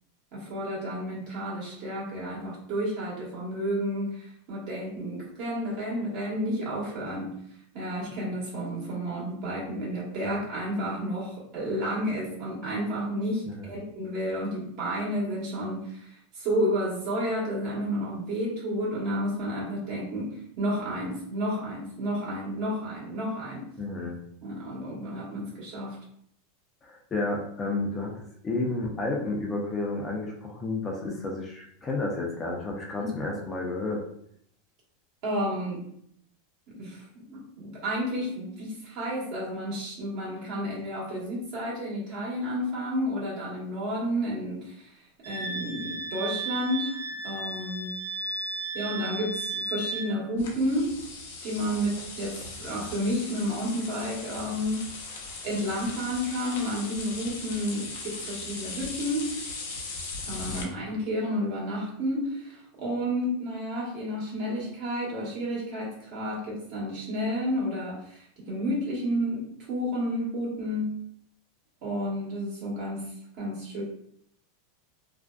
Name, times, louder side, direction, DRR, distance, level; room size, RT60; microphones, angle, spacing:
voice 1, 0.3-7.4 7.7-16.1 16.3-23.7 24.4-26.0 33.0-33.1 35.2-35.9 36.7-45.0 45.2-47.0 47.2-48.0 48.7-50.9 51.4-55.0 55.4-59.3 60.2-71.0 71.8-73.8, equal, 55° right, -4 dB, 1.1 m, -31 dB
voice 2, 13.5-13.8 23.8-24.2 26.8-28.1 28.4-34.0 60.5-60.7, left 2 dB, 20° left, -1 dB, 0.5 m, -31 dB
Wind instrument woodwind instrument, 45.2-50.1, right 2 dB, 85° right, 0.6 m, -34 dB
sound 1, 50.4-60.6, left 3 dB, 80° left, 0.6 m, -39 dB
2.5 x 2.2 x 2.2 m, 0.68 s
supercardioid pair, 130°, 0 cm